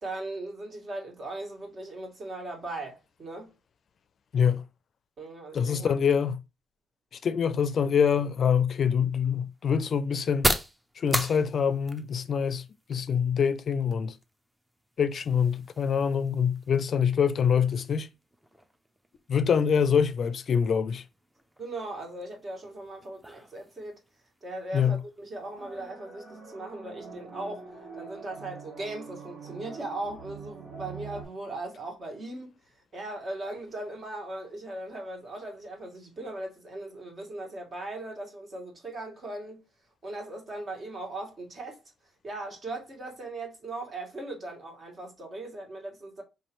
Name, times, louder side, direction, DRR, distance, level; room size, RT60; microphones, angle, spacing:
voice 1, 0.0-3.5 5.2-5.9 21.6-24.0 24.4-32.5 32.9-39.6 40.0-41.8 42.2-46.2, right 2 dB, 45° right, 1.9 m, -38 dB
voice 2, 4.3-4.6 5.5-6.4 7.2-10.6 11.0-14.2 15.0-18.1 19.3-21.0 24.7-25.0, left 7 dB, 55° left, 0.4 m, -25 dB
sound 1, 8.3-25.9, equal, 10° right, 0.7 m, -39 dB
sound 2, 25.6-31.2, right 5 dB, 80° right, 2.1 m, -44 dB
4.8 x 3.1 x 3.0 m
cardioid pair, 90°, 0 cm